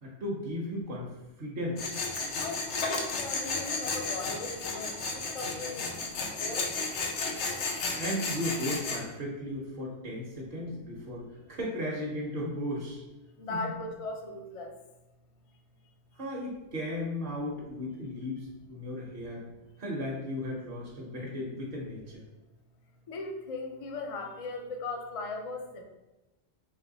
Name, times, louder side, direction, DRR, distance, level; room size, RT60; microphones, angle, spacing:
voice 1, 0.0-2.0 8.0-13.0 13.5-13.7 16.1-19.4 19.8-22.3, left 1 dB, 55° right, -3 dB, 0.9 m, -36 dB
Tools, 1.8-9.0, left 3 dB, 80° left, 1.0 m, -33 dB
voice 2, 2.4-5.9 6.2-6.7 13.4-14.7 23.1-25.8, left 3 dB, 50° left, 3 dB, 0.4 m, -38 dB
3.3 x 3.1 x 3.9 m, 1.0 s
omnidirectional pair, 1.2 m